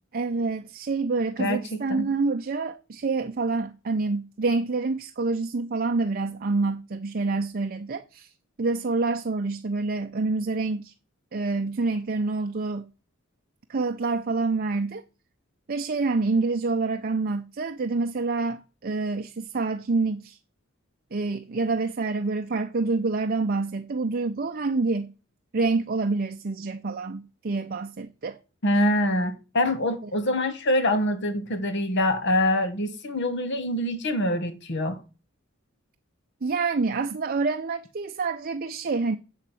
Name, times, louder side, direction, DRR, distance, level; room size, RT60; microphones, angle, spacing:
voice 1, 0.1-8.3 8.6-10.9 11.3-12.9 13.7-15.0 15.7-20.4 21.1-25.1 25.5-28.4 36.4-39.2, right 3 dB, 45° right, 0.6 m, -27 dB
voice 2, 1.4-2.1 28.6-35.0, left 1 dB, 60° left, 1.3 m, -25 dB
7.4 x 7.1 x 7.7 m
head